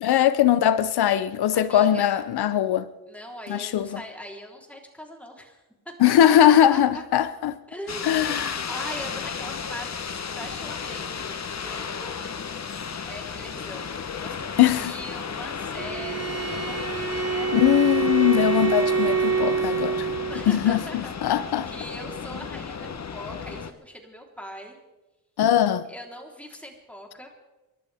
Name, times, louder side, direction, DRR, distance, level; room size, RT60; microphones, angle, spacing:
voice 1, 0.0-2.9 3.5-4.0 6.0-7.5 8.0-8.7 14.6-14.9 17.5-20.1 20.5-21.7 25.4-25.9, left 11 dB, 85° left, 0.7 m, -20 dB
voice 2, 1.5-2.2 3.1-7.0 7.7-8.1 8.7-12.3 13.0-13.9 14.2-17.6 19.9-24.8 25.9-27.3, equal, 5° left, 3.7 m, -41 dB
sound 1, 7.9-23.7, left 6 dB, 45° left, 1.1 m, -34 dB
Bowed string instrument, 15.7-20.5, right 7 dB, 40° right, 1.9 m, -26 dB
29.0 x 12.0 x 3.5 m
cardioid pair, 80°, 38 cm